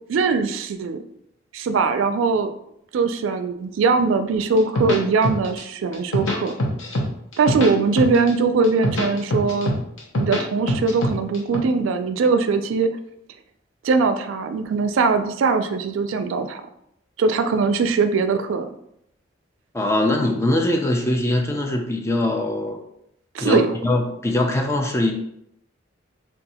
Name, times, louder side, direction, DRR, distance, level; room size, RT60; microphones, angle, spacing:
voice 1, 0.1-1.0 1.5-2.5 2.9-6.5 7.4-9.7 10.2-12.9 13.8-16.6 17.2-18.7 23.3-23.7, right 4 dB, 85° right, 9 dB, 0.3 m, -21 dB
sound 1, 4.6-5.6 5.9-7.1 7.3-8.3 8.6-10.4 10.7-11.6, left 1 dB, 80° left, 0.7 m, -23 dB
voice 2, 19.7-22.8 23.4-25.1, left 1 dB, 15° left, 2 dB, 0.4 m, -22 dB
2.7 x 2.3 x 4.1 m, 0.75 s
head